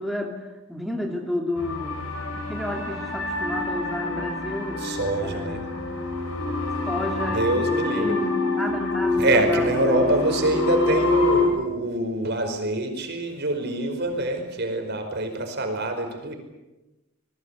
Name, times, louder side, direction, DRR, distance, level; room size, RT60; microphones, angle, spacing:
voice 1, 0.0-2.0 2.3-4.9 5.2-6.0 6.9-10.7, left 1 dB, ahead, 0 dB, 2.4 m, -32 dB
sound 1, 1.6-11.4, left 2 dB, 65° left, 7.5 m, -26 dB
voice 2, 4.8-5.6 7.2-8.2 9.2-16.3, right 2 dB, 50° right, 5 dB, 5.0 m, -25 dB
27.5 x 20.5 x 8.3 m, 1.0 s
head